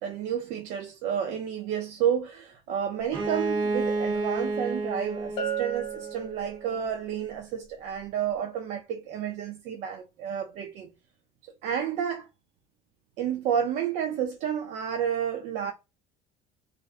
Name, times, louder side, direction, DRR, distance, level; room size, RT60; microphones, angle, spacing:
voice 1, 0.0-10.9 11.6-12.3 13.2-15.7, right 8 dB, 65° right, 0.4 m, -30 dB
Bowed string instrument, 3.1-6.8, right 3 dB, 40° right, 0.8 m, -31 dB
Bell, 5.4-7.0, right 7 dB, 50° left, 0.7 m, -34 dB
2.5 x 2.1 x 2.4 m
cardioid pair, 130°, 13 cm